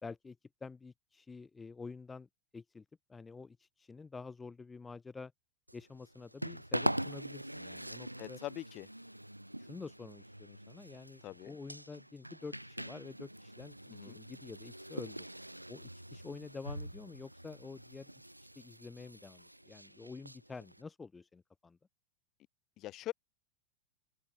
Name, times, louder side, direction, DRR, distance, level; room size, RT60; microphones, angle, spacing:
voice 1, 0.0-2.8 3.1-5.3 5.7-8.4 9.6-15.3 15.7-18.1 18.6-21.8, left 4 dB, 15° left, 2.3 m, -48 dB
sound 1, 5.7-20.8, right 1 dB, 90° right, 0.8 m, -43 dB
voice 2, 8.2-8.9 11.2-11.5 13.9-14.2 22.8-23.1, left 15 dB, 35° left, 4.7 m, -43 dB
open air
figure-of-eight pair, 90°, 0 cm